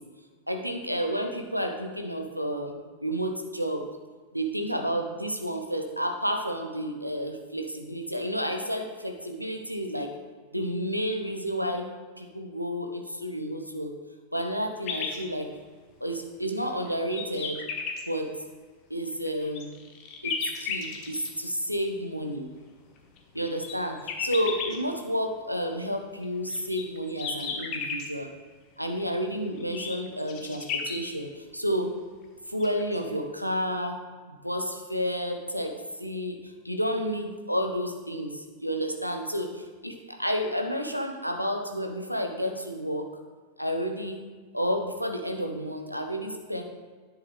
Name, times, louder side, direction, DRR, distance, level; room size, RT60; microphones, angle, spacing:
voice 1, 0.5-2.7 3.0-3.8 4.3-10.1 10.5-11.9 12.2-13.9 14.3-15.5 16.0-17.6 18.1-18.3 18.9-19.7 20.2-22.5 23.3-28.3 28.8-31.9 32.5-34.0 34.3-35.7 36.0-43.1 43.6-44.2 44.5-46.6, equal, 90° right, 4 dB, 0.8 m, -31 dB
sound 1, 14.8-15.2 15.9-16.0 16.6-18.0 19.1-21.3 23.0-24.8 26.2-28.1 29.5-31.0 32.2-32.3 32.6-32.9, left 5 dB, 40° left, 1.2 m, -34 dB
9.8 x 7.5 x 3.2 m, 1.5 s
figure-of-eight pair, 90°, 0 cm